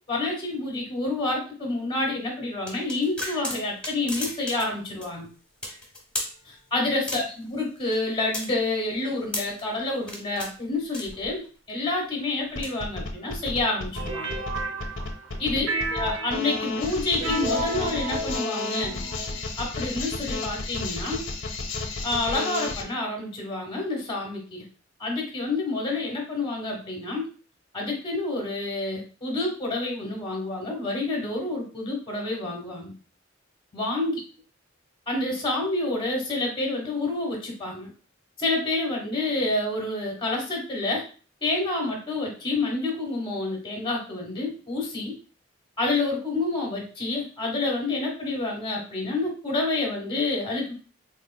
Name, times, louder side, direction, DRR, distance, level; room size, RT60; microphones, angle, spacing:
voice 1, 0.1-5.3 6.4-11.4 11.7-14.4 15.4-19.0 19.6-21.2 22.0-24.6 25.0-27.3 27.7-32.9 33.7-34.2 35.1-37.9 38.4-41.0 41.4-45.1 45.8-50.7, left 2 dB, 25° left, 0 dB, 1.2 m, -28 dB
sound 1, 2.7-4.7 5.0-5.1 5.6-6.3 7.1-7.5 7.9-9.6 10.0-10.5 10.9-11.5 12.4-12.7, left 1 dB, 5° left, 1.2 m, -34 dB
sound 2, 12.5-22.8, left 3 dB, 70° left, 0.6 m, -32 dB
sound 3, 13.9-15.4 15.7-19.4, right 2 dB, 85° right, 0.5 m, -32 dB
3.9 x 3.2 x 2.2 m, 0.37 s
head